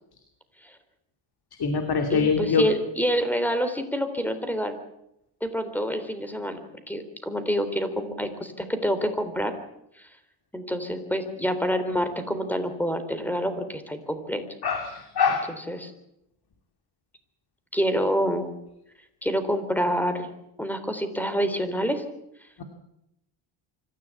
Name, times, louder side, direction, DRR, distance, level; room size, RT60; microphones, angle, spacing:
voice 1, 1.6-2.6 14.6-15.5 22.6-22.7, left 5 dB, 50° left, 6 dB, 2.7 m, -24 dB
voice 2, 2.1-4.7 5.4-6.6 6.9-9.5 10.0-10.1 10.5-14.4 15.7-15.9 17.7-18.5 19.2-20.3 20.6-22.0, equal, 5° left, 9 dB, 3.6 m, -27 dB
25.0 x 14.5 x 8.4 m, 0.83 s
cardioid pair, 105°, 49 cm